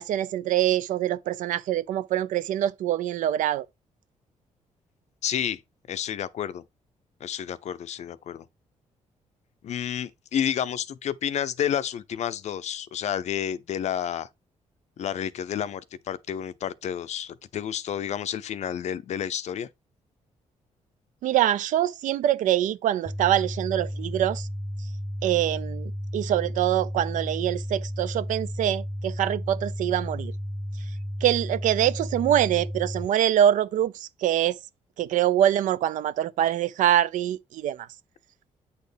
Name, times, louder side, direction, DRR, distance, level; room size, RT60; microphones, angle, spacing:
voice 1, 0.0-3.7 21.2-24.5 25.2-30.3 31.2-34.6 35.0-37.9, right 11 dB, 80° right, 0.4 m, -24 dB
voice 2, 5.2-5.6 5.9-6.6 7.2-8.4 9.6-14.3 15.0-19.7, left 9 dB, 60° left, 0.5 m, -30 dB
sound 1, 23.1-33.1, equal, 5° left, 0.3 m, -33 dB
8.3 x 4.2 x 3.4 m
cardioid pair, 110°, 13 cm